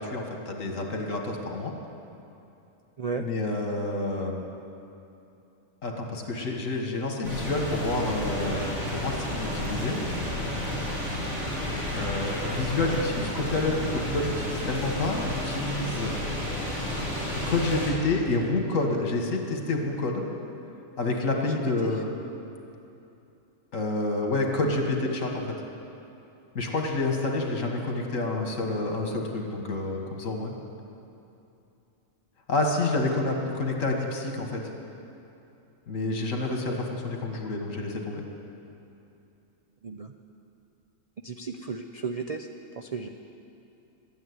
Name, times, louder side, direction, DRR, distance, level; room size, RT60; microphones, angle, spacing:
voice 1, 0.0-1.7 3.2-4.4 5.8-10.0 11.9-16.1 17.5-20.2 21.0-22.1 23.7-25.6 26.6-30.5 32.5-34.6 35.9-38.2, left 2 dB, 70° left, 2 dB, 2.0 m, -28 dB
sound 1, 7.2-17.9, left 1 dB, 35° right, 4.9 m, -31 dB
voice 2, 41.2-42.5 42.7-43.1, right 5 dB, 55° right, 4 dB, 0.4 m, -34 dB
13.0 x 9.3 x 9.5 m, 2.8 s
omnidirectional pair, 1.4 m